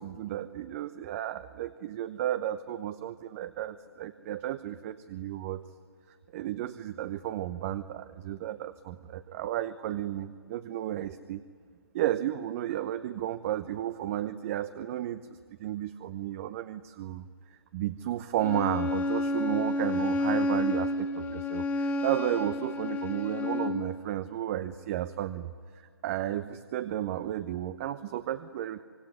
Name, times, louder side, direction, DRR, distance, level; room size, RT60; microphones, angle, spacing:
voice 1, 0.0-5.6 6.3-11.4 11.9-15.3 15.6-28.8, right 12 dB, 35° right, 12 dB, 0.9 m, -33 dB
Bowed string instrument, 18.4-23.9, left 2 dB, 15° left, 1.9 m, -30 dB
25.5 x 23.5 x 9.8 m, 2.1 s
figure-of-eight pair, 140°, 13 cm